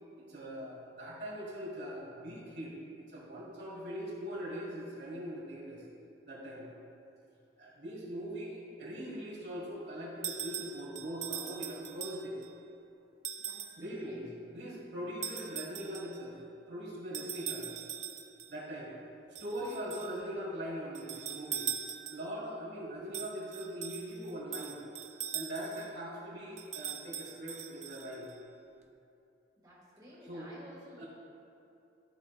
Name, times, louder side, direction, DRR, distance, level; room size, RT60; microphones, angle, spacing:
voice 1, 0.2-5.8 6.2-6.7 7.6-12.4 13.8-16.4 16.7-17.7 18.5-18.9 19.4-21.7 22.1-24.8 25.3-28.3 30.3-30.5 31.0-31.1, equal, 65° right, -5 dB, 1.8 m, -41 dB
sound 1, 10.2-12.5 13.2-13.8 15.2-16.2 17.1-18.5 19.3-20.2 20.9-22.4 23.1-25.9 26.6-28.3, right 9 dB, 40° right, 0.4 m, -41 dB
voice 2, 13.4-14.2 20.0-20.3 29.6-31.0, left 1 dB, 20° right, -8 dB, 1.9 m, -54 dB
12.5 x 6.0 x 2.4 m, 2.7 s
head